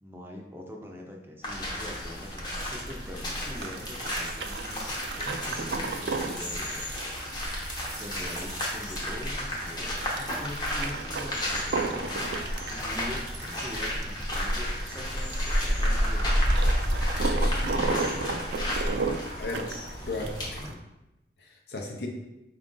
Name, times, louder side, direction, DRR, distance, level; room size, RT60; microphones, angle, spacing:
voice 1, 0.0-4.9 5.2-7.1 7.9-12.3 12.7-16.5 17.6-18.5, left 1 dB, 15° right, 0 dB, 0.5 m, -43 dB
sound 1, 1.4-20.7, equal, 25° left, 0.8 m, -31 dB
sound 2, 2.3-20.7, right 4 dB, 70° right, 0.4 m, -35 dB
sound 3, 2.9-11.6 11.9-12.5 12.9-14.0 14.4-15.6 16.8-17.2 17.5-17.7, right 4 dB, 90° right, 0.8 m, -47 dB
voice 2, 17.3-17.7 19.4-19.7 20.0-20.8 21.4-22.1, left 2 dB, 70° left, 1 dB, 0.6 m, -36 dB
4.5 x 2.5 x 3.7 m, 0.94 s
head